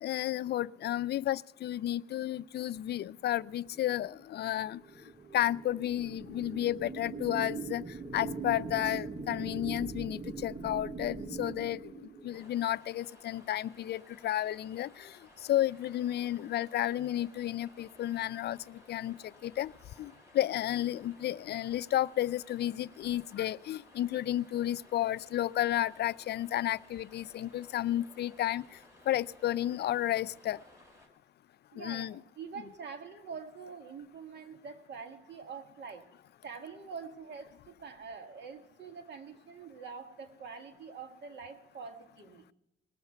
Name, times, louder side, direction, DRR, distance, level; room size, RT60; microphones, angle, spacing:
voice 1, 0.0-4.8 5.3-7.8 8.1-11.9 12.2-15.1 15.5-19.2 19.4-19.7 20.0-28.6 29.1-30.6 31.8-32.2, left 13 dB, 55° left, 0.4 m, -32 dB
sound 1, 3.7-12.5, right 4 dB, 40° right, 1.7 m, -41 dB
sound 2, 12.3-31.1, left 1 dB, 15° right, 4.4 m, -59 dB
voice 2, 31.7-32.1 32.4-36.1 36.4-42.4, right 5 dB, 60° right, 1.9 m, -45 dB
20.0 x 7.0 x 5.6 m
cardioid pair, 90°, 20 cm